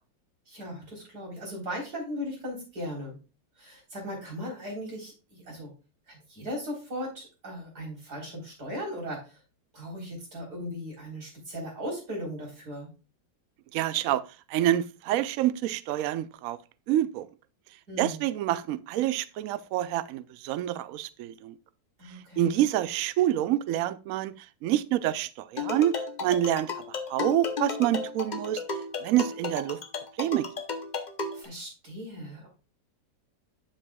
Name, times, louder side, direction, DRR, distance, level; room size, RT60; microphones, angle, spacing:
voice 1, 0.5-3.2 3.6-5.7 6.1-9.4 9.7-12.9 17.9-18.2 22.0-22.5 31.3-32.5, equal, 55° right, 4.3 m, -38 dB
voice 2, 13.7-14.2 14.5-16.6 16.9-17.3 18.0-21.6 22.4-26.7 27.1-28.6 29.0-29.8 30.2-30.5, right 12 dB, 75° right, 0.7 m, -27 dB
sound 1, 25.6-31.5, left 4 dB, 85° left, 0.4 m, -34 dB
9.1 x 7.5 x 2.3 m
omnidirectional pair, 2.0 m